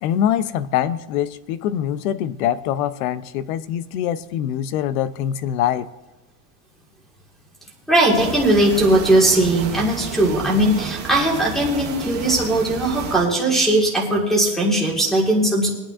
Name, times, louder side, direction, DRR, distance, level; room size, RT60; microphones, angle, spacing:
voice 1, 0.0-5.9, left 10 dB, 85° left, 16 dB, 0.7 m, -23 dB
voice 2, 7.9-15.7, right 1 dB, ahead, -1 dB, 1.7 m, -19 dB
sound 1, 8.1-13.3, right 7 dB, 25° right, 0.8 m, -32 dB
23.0 x 8.9 x 2.5 m, 1.1 s
cardioid pair, 180°, 42 cm